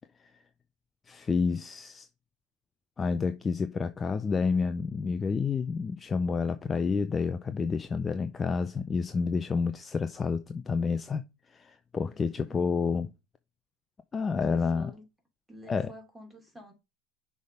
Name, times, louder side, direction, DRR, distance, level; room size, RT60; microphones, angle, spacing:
voice 1, 1.1-2.1 3.0-11.2 11.5-13.1 14.1-14.9 15.7-15.9, left 5 dB, 25° left, 0.5 m, -29 dB
voice 2, 12.0-12.6 14.5-15.0 15.5-16.7, equal, 5° right, 2.9 m, -50 dB
6.2 x 3.6 x 5.4 m
hypercardioid pair, 95°, 0 cm